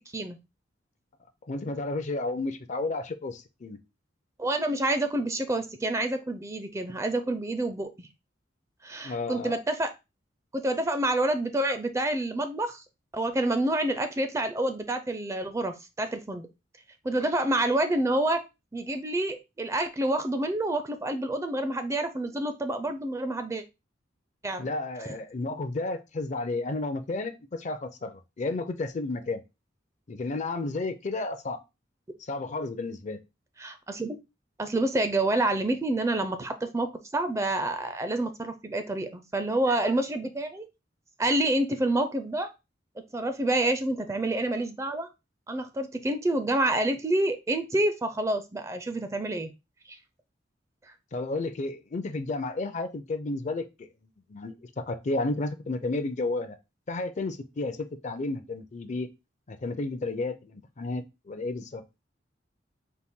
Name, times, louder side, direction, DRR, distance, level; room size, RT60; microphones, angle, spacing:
voice 1, 1.4-3.8 9.0-9.6 24.6-29.4 30.1-31.6 32.2-33.2 51.1-53.9 54.3-56.6 56.9-59.1 59.5-61.8, left 2 dB, 40° left, 9 dB, 0.5 m, -32 dB
voice 2, 4.4-8.1 8.8-9.9 10.5-12.8 13.1-16.5 17.0-18.4 18.7-23.6 24.4-24.7 33.6-34.1 34.6-36.9 37.1-40.7 41.2-42.5 43.1-45.1 45.5-49.5, right 1 dB, 15° right, 8 dB, 0.4 m, -28 dB
4.1 x 2.5 x 3.6 m, 0.25 s
head